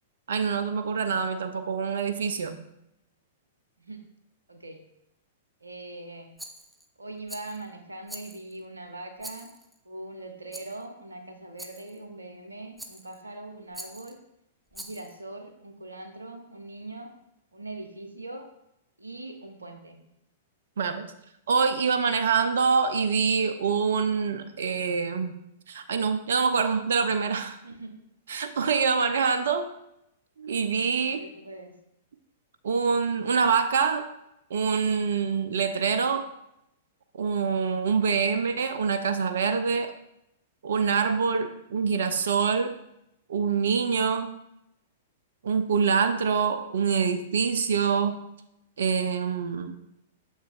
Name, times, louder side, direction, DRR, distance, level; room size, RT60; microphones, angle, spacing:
voice 1, 0.3-2.6 20.8-21.1 21.5-25.3 25.7-27.6 28.3-29.7 30.4-31.2 32.6-34.1 34.5-36.3 37.2-39.9 40.6-42.7 43.3-44.3 45.4-48.2 48.8-49.8, right 5 dB, 65° right, 9 dB, 0.5 m, -25 dB
voice 2, 4.5-4.8 5.6-6.3 7.0-9.5 9.8-14.2 14.7-17.1 17.5-18.5 19.0-20.1 27.6-28.0 31.1-31.7, right 2 dB, 85° right, 5 dB, 0.9 m, -41 dB
Rattle, 6.4-6.9 7.3-7.7 8.1-8.6 9.2-9.8 10.5-10.8 11.6-12.0 12.8-13.2 13.7-14.2 14.7-15.2, right 1 dB, 5° right, 0.6 m, -44 dB
6.8 x 6.4 x 2.5 m, 0.82 s
figure-of-eight pair, 105°, 0 cm